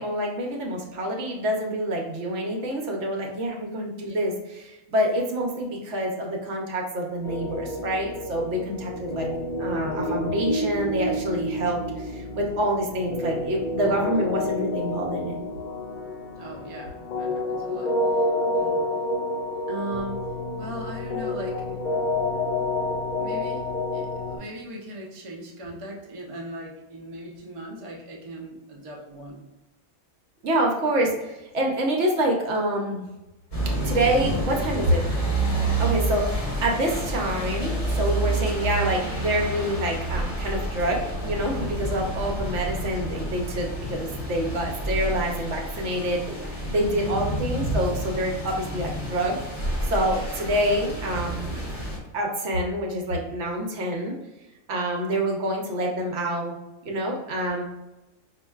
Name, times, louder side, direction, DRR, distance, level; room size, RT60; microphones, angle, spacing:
voice 1, 0.0-9.3 9.6-15.4 30.4-33.0 33.8-35.1 35.8-49.4 49.8-51.6 52.1-54.1 54.7-56.6 56.8-57.6, right 1 dB, 65° right, 0 dB, 1.0 m, -27 dB
sound 1, 7.2-24.4, left 1 dB, 70° left, 0.4 m, -29 dB
voice 2, 16.4-18.3 18.5-19.0 19.7-20.3 20.6-21.8 23.2-29.4 31.0-31.1 47.0-47.3, right 1 dB, 35° right, -2 dB, 0.5 m, -39 dB
sound 2, 33.5-52.0, right 1 dB, 30° left, 1.0 m, -29 dB
5.2 x 2.5 x 2.3 m, 0.98 s
omnidirectional pair, 1.4 m